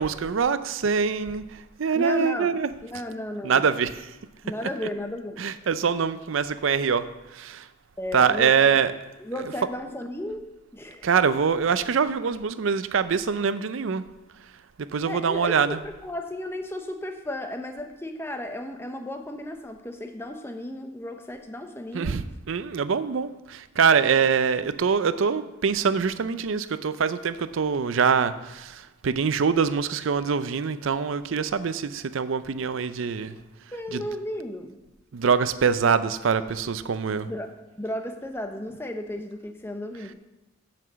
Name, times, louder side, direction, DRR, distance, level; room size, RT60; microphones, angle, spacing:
voice 1, 0.0-1.4 1.8-2.7 3.4-4.1 5.4-7.0 7.3-7.6 8.1-8.9 11.0-14.0 14.9-15.8 21.9-33.4 33.9-34.0 35.1-37.3, right 6 dB, 70° right, 13 dB, 0.5 m, -24 dB
voice 2, 1.9-3.7 4.4-5.7 8.0-8.5 9.2-10.5 10.7-11.1 15.1-22.2 33.7-34.8 37.3-40.1, left 1 dB, 10° left, 5 dB, 0.7 m, -34 dB
7.6 x 5.9 x 6.8 m, 1.0 s
head